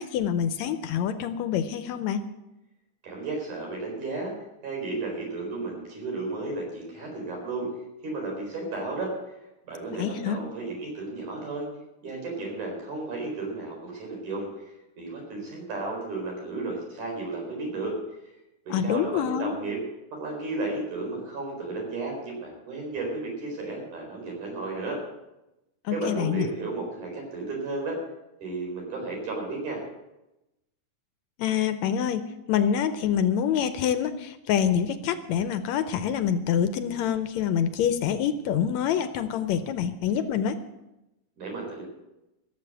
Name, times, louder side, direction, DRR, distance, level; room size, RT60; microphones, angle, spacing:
voice 1, 0.0-2.2 9.9-10.4 18.7-19.5 25.9-26.5 31.4-40.6, left 8 dB, 75° left, 10 dB, 1.9 m, -26 dB
voice 2, 3.0-4.3 4.6-7.7 8.0-9.1 9.6-11.7 12.0-14.5 15.0-18.0 18.7-19.8 20.1-25.0 25.9-28.0 28.4-29.8 41.4-41.8, right 2 dB, 80° right, -1 dB, 5.9 m, -33 dB
16.0 x 7.5 x 7.9 m, 0.94 s
omnidirectional pair, 3.5 m